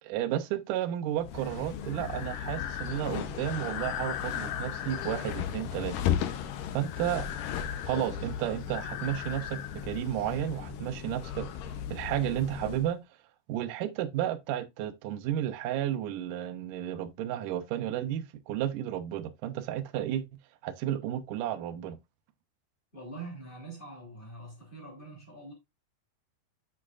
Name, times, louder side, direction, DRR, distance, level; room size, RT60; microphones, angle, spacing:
voice 1, 0.0-5.9 6.7-7.3 7.9-13.0 13.5-20.2 20.6-22.0, right 11 dB, 85° right, 1.8 m, -32 dB
sound 1, 1.2-12.9, left 9 dB, 85° left, 1.9 m, -36 dB
Breathing, 1.4-10.4, left 10 dB, 70° left, 2.1 m, -40 dB
voice 2, 22.9-25.5, right 2 dB, 15° left, 2.5 m, -44 dB
8.4 x 6.2 x 2.4 m
omnidirectional pair, 4.9 m